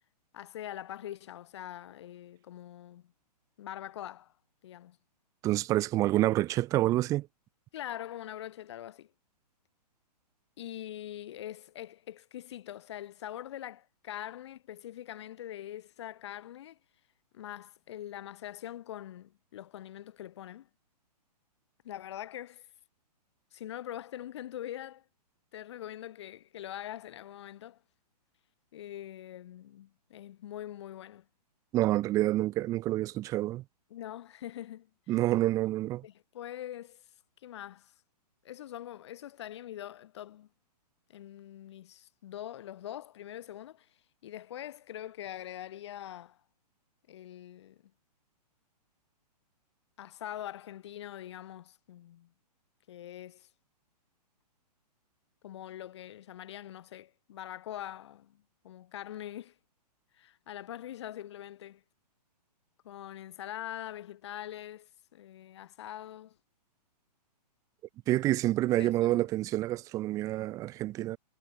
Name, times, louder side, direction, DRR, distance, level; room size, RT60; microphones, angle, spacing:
voice 1, 0.3-3.1 3.6-4.3 4.6-5.0 7.7-9.1 10.6-16.8 17.3-20.7 21.8-22.7 23.5-25.0 25.5-27.8 28.7-31.3 33.9-35.1 36.0-37.0 37.4-37.9 38.4-40.5 41.1-43.9 44.2-46.4 47.1-47.8 50.0-52.3 52.9-53.5 55.4-59.5 60.2-61.8 62.8-66.4 68.8-69.3, left 12 dB, 40° left, 7.0 m, -43 dB
voice 2, 5.4-7.3 31.7-33.6 35.1-36.0 68.1-71.2, right 15 dB, 15° right, 2.3 m, -28 dB
hypercardioid pair, 170°, 21 cm